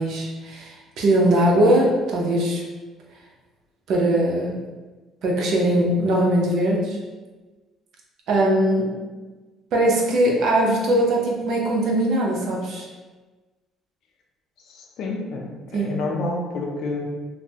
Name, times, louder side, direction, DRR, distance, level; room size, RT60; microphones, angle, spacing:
voice 1, 0.0-2.6 3.9-4.6 5.2-7.0 8.3-8.9 9.7-12.9 15.7-15.9, right 1 dB, 70° right, -1 dB, 0.6 m, -20 dB
voice 2, 14.7-17.1, left 2 dB, 65° left, 1 dB, 0.5 m, -29 dB
3.2 x 2.0 x 2.7 m, 1.3 s
cardioid pair, 100°, 0 cm